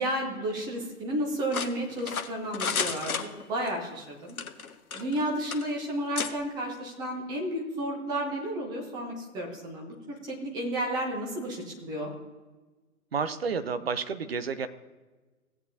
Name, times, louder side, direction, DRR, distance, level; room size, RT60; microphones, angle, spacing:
voice 1, 0.0-4.4 4.9-12.1, right 1 dB, 10° right, -1 dB, 0.9 m, -32 dB
sound 1, 1.5-3.8 4.3-5.2 5.5-5.7 6.2-6.3, left 5 dB, 70° left, 1.0 m, -32 dB
voice 2, 13.1-14.7, right 5 dB, 45° right, 11 dB, 0.7 m, -30 dB
16.5 x 8.4 x 2.8 m, 1.2 s
figure-of-eight pair, 130°, 44 cm